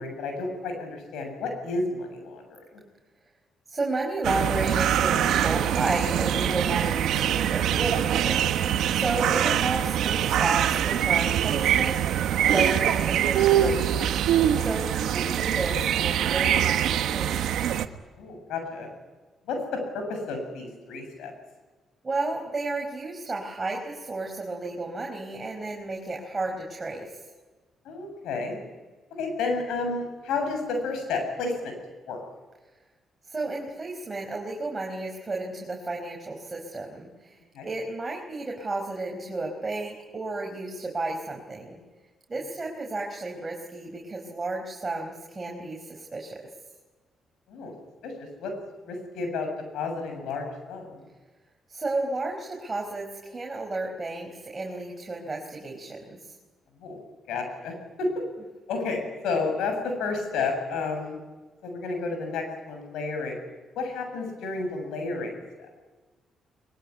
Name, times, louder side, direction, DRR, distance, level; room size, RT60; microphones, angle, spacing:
voice 1, 0.0-2.8 14.8-14.9 18.2-18.9 19.5-21.3 27.8-28.6 29.2-31.7 32.1-32.2 37.5-37.7 47.5-47.7 48.0-48.6 48.9-51.1 56.8-57.0 57.3-58.2 58.7-61.2 61.6-63.4 63.8-65.7, left 3 dB, 85° left, 5 dB, 7.5 m, -31 dB
voice 2, 3.7-14.2 14.5-17.5 22.0-27.2 33.3-41.8 42.3-46.5 51.7-56.3, right 2 dB, 25° right, 0 dB, 4.8 m, -32 dB
sound 1, 4.2-17.9, right 10 dB, 80° right, 1.3 m, -24 dB
22.0 x 22.0 x 9.8 m, 1.3 s
cardioid pair, 90°, 0 cm